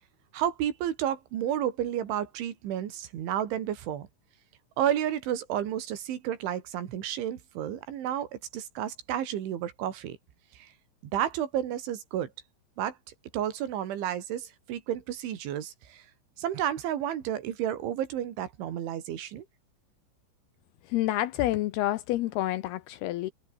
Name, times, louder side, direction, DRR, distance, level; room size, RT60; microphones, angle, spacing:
voice 1, 0.3-4.1 4.8-8.3 8.5-10.2 10.6-10.7 11.1-12.3 12.8-12.9 13.3-16.0 16.4-19.4, right 10 dB, 90° right, 4.9 m, -31 dB
voice 2, 20.9-23.3, left 15 dB, 80° left, 2.4 m, -28 dB
omnidirectional pair, 5.3 m